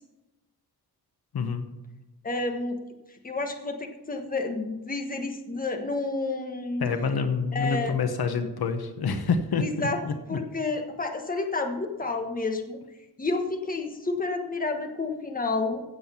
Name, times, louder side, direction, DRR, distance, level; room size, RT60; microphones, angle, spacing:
voice 1, 2.2-2.8 3.1-6.9 7.5-7.9 9.6-10.0 10.3-12.8 13.2-15.8, left 3 dB, 20° left, 4 dB, 1.4 m, -30 dB
voice 2, 6.8-10.4, left 5 dB, 75° left, 7 dB, 1.3 m, -27 dB
16.0 x 7.8 x 5.7 m, 1.0 s
wide cardioid pair, 140°, 38 cm